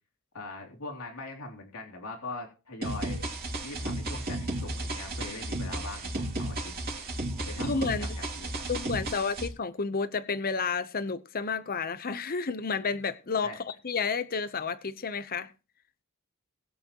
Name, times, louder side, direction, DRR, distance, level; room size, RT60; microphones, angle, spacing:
voice 1, 0.3-3.4 3.6-6.7 7.5-7.7 8.0-8.6 13.4-13.6, left 2 dB, 85° left, 3.2 m, -41 dB
sound 1, 2.8-9.5, right 1 dB, 45° right, 2.9 m, -34 dB
voice 2, 7.6-8.2 8.7-15.5, left 5 dB, 45° left, 0.8 m, -31 dB
21.0 x 7.9 x 3.0 m
head